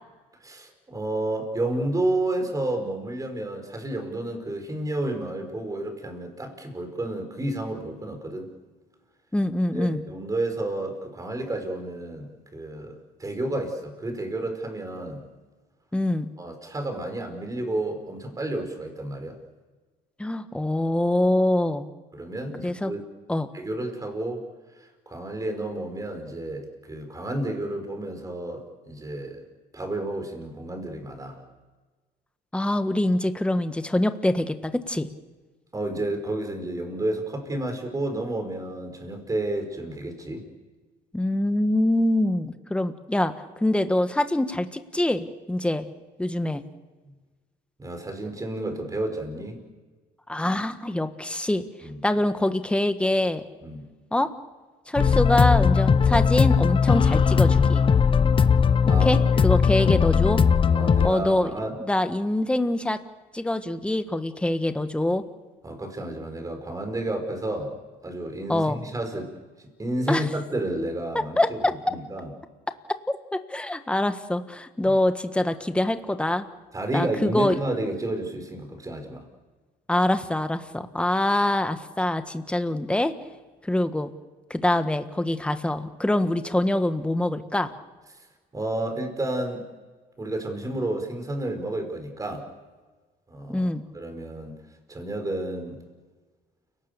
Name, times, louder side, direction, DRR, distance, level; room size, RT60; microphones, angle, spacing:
voice 1, 0.4-8.5 9.7-15.2 16.4-19.4 22.1-23.0 23.5-24.4 25.1-29.4 29.7-31.4 35.7-40.5 47.8-49.6 51.8-52.0 53.6-53.9 58.9-59.5 59.8-60.2 60.7-61.8 65.6-67.7 68.0-69.3 69.8-72.3 74.8-74.9 76.7-79.2 88.5-89.7 90.2-92.5 93.3-93.7 93.9-94.6 94.9-95.8, right 1 dB, 20° right, 5 dB, 5.5 m, -31 dB
voice 2, 9.3-10.0 15.9-16.3 20.2-21.9 22.6-22.9 23.3-23.5 32.5-35.1 41.1-43.3 43.6-45.8 46.2-46.6 50.3-51.6 52.0-53.4 54.1-54.3 54.9-57.8 59.0-60.4 61.0-61.5 61.8-63.0 63.3-65.2 68.5-68.8 70.1-70.3 71.1-72.0 73.3-76.4 76.9-77.6 79.9-83.1 83.6-84.1 84.5-87.7 93.5-93.8, left 1 dB, 5° left, 9 dB, 1.4 m, -24 dB
sound 1, 55.0-61.1, left 6 dB, 30° left, 0.8 m, -19 dB
29.5 x 18.0 x 6.9 m, 1.3 s
cardioid pair, 110°, 17 cm